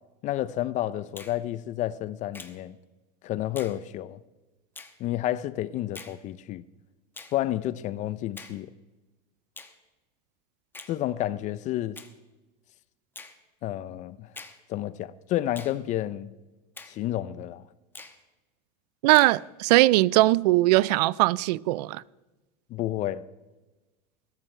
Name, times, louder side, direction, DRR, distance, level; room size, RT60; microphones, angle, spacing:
voice 1, 0.2-2.8 3.2-4.2 5.0-6.6 7.3-8.7 10.9-12.0 13.6-14.3 14.7-16.3 16.9-17.6 22.7-23.2, left 13 dB, 35° left, 0.5 m, -30 dB
Finger snapping, 1.2-1.4 2.3-2.6 3.6-3.8 4.7-5.0 5.9-6.2 7.1-7.4 8.4-8.6 9.6-9.8 10.7-11.0 11.9-12.1 13.1-13.4 14.3-14.6 15.5-15.8 16.8-17.0 17.9-18.2 19.1-19.4, left 3 dB, 10° left, 1.0 m, -44 dB
voice 2, 19.0-22.0, right 18 dB, 75° right, 0.4 m, -20 dB
21.0 x 13.0 x 3.3 m
supercardioid pair, 140°, 21 cm